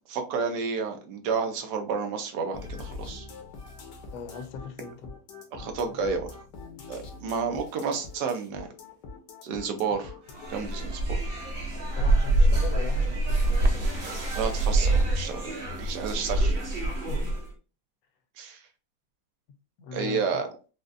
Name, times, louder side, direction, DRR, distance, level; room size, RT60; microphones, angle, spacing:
voice 1, 0.1-3.3 5.5-6.3 6.9-8.7 9.4-10.1 10.5-11.2 14.4-16.5 18.4-18.6 19.9-20.5, right 5 dB, 80° right, 1.3 m, -31 dB
sound 1, 2.5-10.5, left 3 dB, 90° left, 1.5 m, -43 dB
voice 2, 4.1-5.1 11.9-13.8 16.9-17.4 19.8-20.4, left 6 dB, 70° left, 1.1 m, -40 dB
sound 2, 10.3-17.5, right 2 dB, 45° right, 1.0 m, -25 dB
4.9 x 2.1 x 2.5 m
omnidirectional pair, 1.8 m